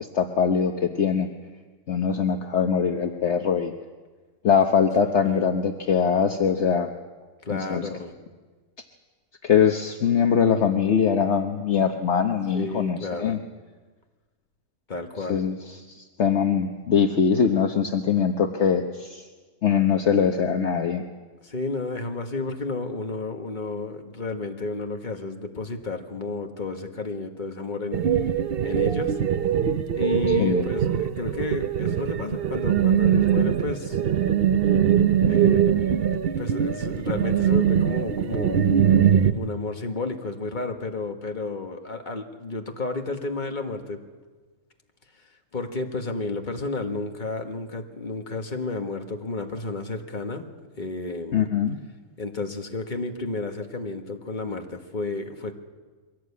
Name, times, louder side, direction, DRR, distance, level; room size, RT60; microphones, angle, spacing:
voice 1, 0.1-1.3 1.9-3.7 4.4-6.9 7.5-7.8 9.4-13.4 15.3-15.6 16.0-19.2 19.6-21.0 30.4-30.7 51.3-51.8, left 7 dB, 60° left, 5 dB, 1.2 m, -22 dB
voice 2, 7.4-8.1 12.5-13.4 14.9-15.4 21.4-28.0 28.6-29.2 29.9-34.0 35.2-36.0 36.4-38.6 39.3-44.0 45.5-50.5 50.8-51.5 52.2-55.5, left 3 dB, 35° left, 4 dB, 1.7 m, -31 dB
sound 1, 27.9-39.3, right 9 dB, 50° right, 0.9 m, -22 dB
23.0 x 17.0 x 8.5 m, 1.4 s
omnidirectional pair, 1.4 m